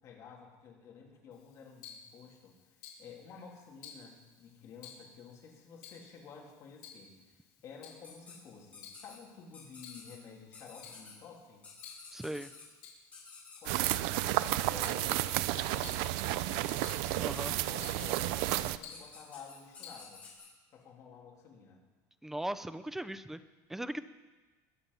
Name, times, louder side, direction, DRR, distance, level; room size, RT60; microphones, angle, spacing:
voice 1, 0.0-2.5 3.0-11.7 13.6-16.3 17.1-20.2 20.7-21.8, left 6 dB, 35° left, -1 dB, 3.0 m, -52 dB
Tick-tock, 1.3-20.4, left 7 dB, 60° left, 4.3 m, -56 dB
sound 1, 8.0-8.3 8.7-9.1 9.5-10.1 10.5-11.1 11.6-12.6 13.1-13.9 14.3-14.5 14.8-20.5, left 5 dB, 15° left, 5.3 m, -51 dB
voice 2, 12.1-12.5 17.2-17.6 22.2-23.4 23.7-24.0, right 1 dB, 5° right, 13 dB, 0.4 m, -38 dB
sound 2, 13.7-18.8, right 16 dB, 60° right, 0.5 m, -32 dB
21.5 x 7.5 x 5.6 m, 1.2 s
cardioid pair, 165°, 9 cm